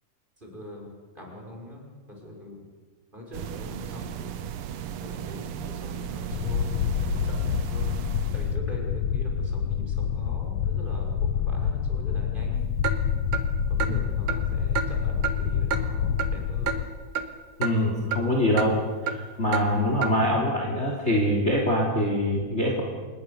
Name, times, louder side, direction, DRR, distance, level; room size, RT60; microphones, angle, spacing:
voice 1, 0.4-2.6 3.1-4.6 5.0-12.8 13.7-16.8, left 2 dB, 15° right, -1 dB, 6.1 m, -42 dB
sound 1, 3.3-8.6, right 9 dB, 65° right, 1.4 m, -36 dB
sound 2, 6.3-16.8, left 8 dB, 65° left, 1.6 m, -27 dB
Clock, 12.8-13.0 13.3-13.4 13.8-13.9 14.3-14.4 14.8-14.9 15.2-15.4 15.7-15.8 16.2-16.3 16.7-16.8 17.2-17.3 17.6-17.7 18.1-18.2 18.6-18.7 19.1-19.2 19.5-19.7 20.0-20.1, right 7 dB, 90° right, 3.0 m, -28 dB
voice 2, 17.6-22.8, left 1 dB, 20° left, 0 dB, 3.3 m, -24 dB
27.0 x 21.0 x 7.0 m, 1.4 s
omnidirectional pair, 3.5 m